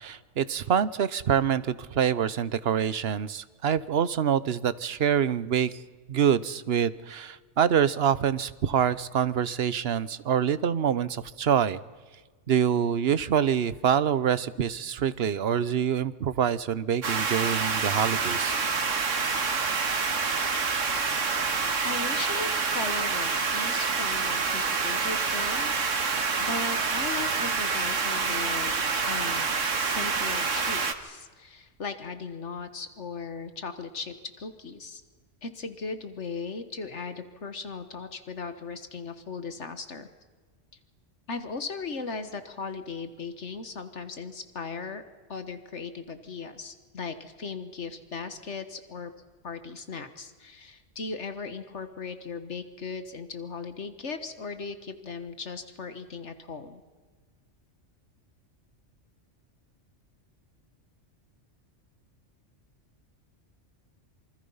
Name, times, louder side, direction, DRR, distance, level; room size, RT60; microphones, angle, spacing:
voice 1, 0.0-5.7 6.1-11.8 12.5-18.6, right 8 dB, 60° right, 16 dB, 1.0 m, -26 dB
sound 1, 17.0-30.9, right 5 dB, 85° right, 1.9 m, -27 dB
voice 2, 21.9-25.9 26.4-29.5 29.8-35.0 35.4-40.1 41.3-45.0 45.3-49.1 49.4-56.8, left 4 dB, 70° left, 9 dB, 1.7 m, -37 dB
27.0 x 25.0 x 5.6 m, 1.4 s
omnidirectional pair, 1.3 m